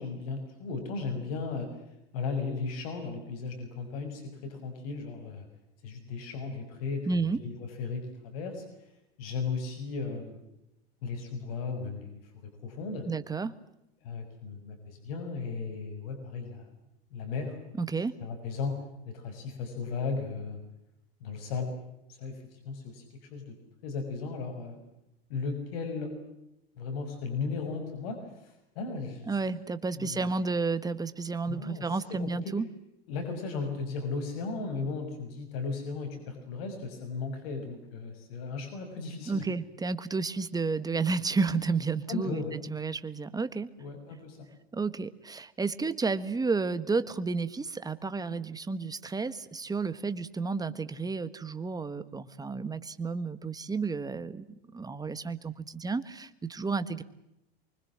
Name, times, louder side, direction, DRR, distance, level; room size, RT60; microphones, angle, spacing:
voice 1, 0.0-1.8 2.1-5.5 5.8-8.9 9.2-10.4 11.0-13.1 14.0-16.7 17.1-17.6 18.2-18.8 19.0-20.6 21.2-21.7 22.1-23.6 23.8-24.8 25.3-26.1 26.8-29.3 29.9-30.3 31.5-32.3 33.1-39.5 42.1-42.6 43.8-44.5, left 4 dB, 65° left, 6 dB, 6.5 m, -36 dB
voice 2, 7.1-7.4 13.1-13.5 17.8-18.2 29.3-32.7 39.3-43.7 44.7-57.0, right 4 dB, 10° right, 12 dB, 1.5 m, -31 dB
25.0 x 24.5 x 7.6 m, 0.86 s
supercardioid pair, 115°, 32 cm